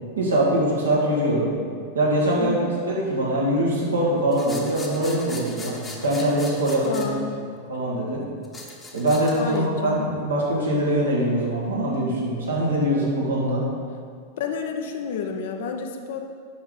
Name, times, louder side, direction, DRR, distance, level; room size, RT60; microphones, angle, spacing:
voice 1, 0.2-1.5 1.9-5.8 6.0-7.1 7.7-8.2 8.9-13.6, right 1 dB, 70° right, -5 dB, 1.9 m, -23 dB
voice 2, 2.4-2.8 6.9-7.4 9.3-10.1 14.4-16.2, left 6 dB, 55° left, 4 dB, 0.8 m, -30 dB
sound 1, 4.3-7.1 8.4-9.7, left 2 dB, 15° left, 1.1 m, -39 dB
8.6 x 6.1 x 4.0 m, 2.1 s
figure-of-eight pair, 90°, 0 cm